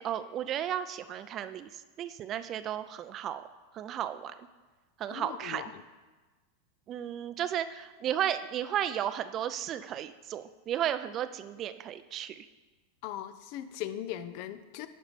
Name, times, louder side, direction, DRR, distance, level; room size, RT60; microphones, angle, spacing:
voice 1, 0.0-1.7 2.0-3.5 3.7-4.3 5.0-5.6 6.9-12.5, right 10 dB, 40° right, 12 dB, 0.5 m, -34 dB
voice 2, 5.1-5.8 13.0-14.9, left 12 dB, 55° left, 11 dB, 0.5 m, -39 dB
9.7 x 4.1 x 5.1 m, 1.3 s
hypercardioid pair, 95°, 0 cm